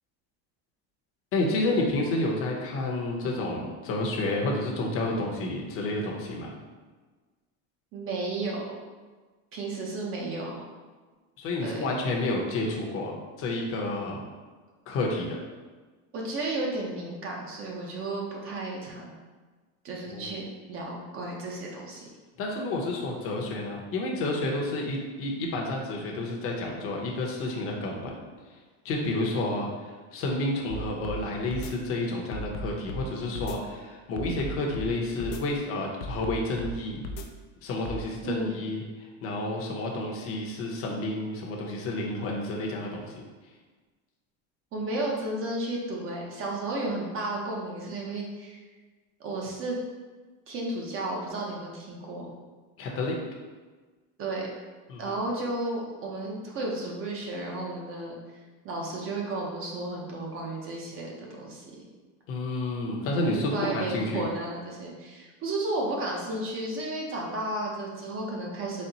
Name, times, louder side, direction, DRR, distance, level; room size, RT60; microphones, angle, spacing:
voice 1, 1.3-6.5 11.4-13.1 13.4-14.2 14.9-15.4 20.1-20.4 22.4-28.1 28.8-29.7 30.1-37.0 37.6-38.8 39.2-43.2 52.8-53.1 54.9-55.1 62.3-64.2, left 2 dB, 40° left, -1 dB, 0.8 m, -30 dB
voice 2, 7.9-8.6 9.5-10.6 11.6-11.8 16.1-19.1 19.8-22.1 38.2-38.6 44.7-48.6 49.2-49.8 50.5-52.3 54.2-54.5 55.0-58.2 58.6-61.7 63.3-68.9, right 2 dB, 35° right, -2 dB, 0.8 m, -33 dB
sound 1, 30.7-31.2 31.5-31.7 32.3-33.1 33.4-33.6 34.2-34.9 35.2-35.4 36.0-36.7 37.0-37.3 37.9-38.0, left 1 dB, 85° left, 0.6 m, -35 dB
4.2 x 2.1 x 4.0 m, 1.4 s
cardioid pair, 150°, 35 cm